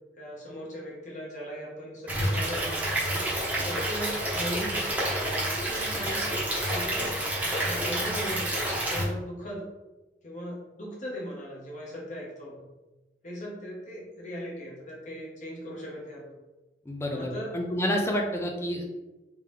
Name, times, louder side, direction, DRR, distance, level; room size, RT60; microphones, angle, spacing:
voice 1, 0.2-3.3 3.6-6.3 6.7-7.2 7.5-9.7 10.2-12.7 13.2-16.3 17.1-17.6, equal, 45° left, -4 dB, 1.1 m, -38 dB
Stream / Liquid, 2.1-9.0, right 1 dB, 10° right, 0.9 m, -29 dB
voice 2, 16.9-18.8, equal, 15° left, 1 dB, 0.5 m, -29 dB
3.6 x 3.0 x 3.3 m, 1.1 s
head